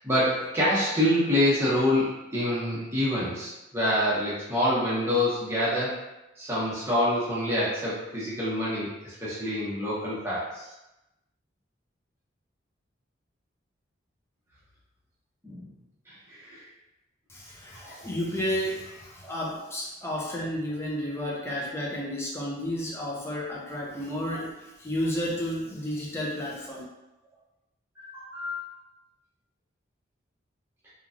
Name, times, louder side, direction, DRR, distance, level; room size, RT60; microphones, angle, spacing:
voice 1, 0.0-6.0 6.4-10.6 15.4-15.7 16.3-16.6 17.8-18.1 28.0-28.6, left 1 dB, 15° right, -9 dB, 0.9 m, -26 dB
voice 2, 17.3-26.8, equal, 15° left, -4 dB, 0.5 m, -32 dB
3.0 x 2.4 x 2.5 m, 0.93 s
head